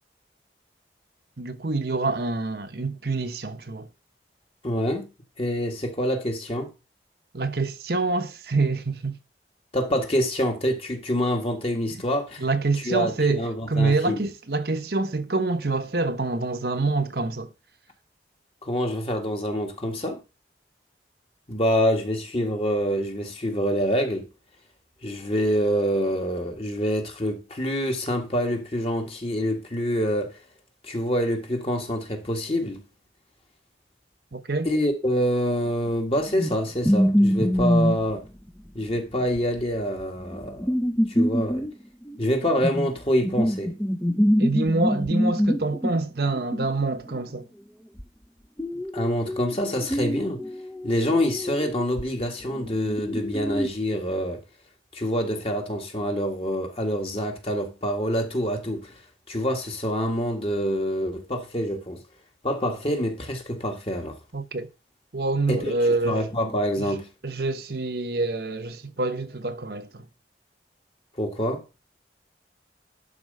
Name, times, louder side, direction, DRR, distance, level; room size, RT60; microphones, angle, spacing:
voice 1, 1.4-3.9 7.3-9.2 12.4-17.5 34.3-34.7 44.4-47.5 64.3-64.7 65.1-66.3 66.8-67.0 67.2-70.0, right 3 dB, 60° right, 1.0 m, -26 dB
voice 2, 4.6-5.1 5.4-6.7 9.7-12.4 12.9-14.2 18.6-20.2 21.5-24.3 25.0-30.4 30.8-32.8 34.6-38.3 38.7-40.7 41.1-41.7 42.2-43.7 48.7-50.4 50.8-54.4 54.9-58.9 59.3-62.0 62.4-64.2 65.5-65.7 66.0-67.1 71.2-71.6, equal, 35° left, 1.8 m, -26 dB
sound 1, 36.3-36.6 36.8-38.2 38.5-38.6 38.8-38.9 39.4-42.9 43.2-46.0 46.4-47.2 48.0-48.1 48.6-53.7, equal, 10° left, 0.7 m, -25 dB
11.5 x 4.5 x 5.5 m
head